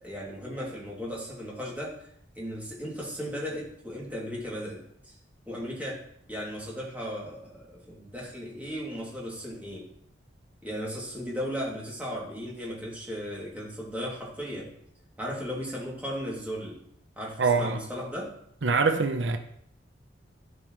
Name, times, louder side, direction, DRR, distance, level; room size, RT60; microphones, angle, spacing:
voice 1, 0.0-5.2 5.5-6.0 6.3-9.8 10.6-14.7 15.2-16.8 17.2-18.3, equal, 10° right, -5 dB, 2.6 m, -36 dB
voice 2, 17.4-17.8 18.6-19.4, right 4 dB, 90° right, 7 dB, 0.7 m, -24 dB
15.5 x 5.3 x 3.1 m, 0.69 s
head